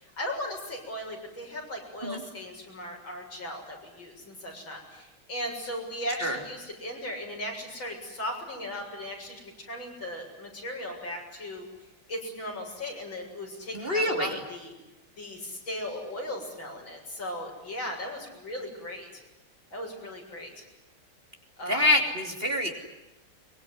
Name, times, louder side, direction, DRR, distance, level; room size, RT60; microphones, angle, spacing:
voice 1, 0.0-11.6 12.1-14.7 15.2-19.1 19.7-20.6 21.6-21.9, left 1 dB, 65° left, 1 dB, 7.8 m, -37 dB
voice 2, 13.7-14.4 21.7-22.7, left 1 dB, 25° right, 3 dB, 3.2 m, -26 dB
23.5 x 23.5 x 9.6 m, 0.98 s
omnidirectional pair, 2.2 m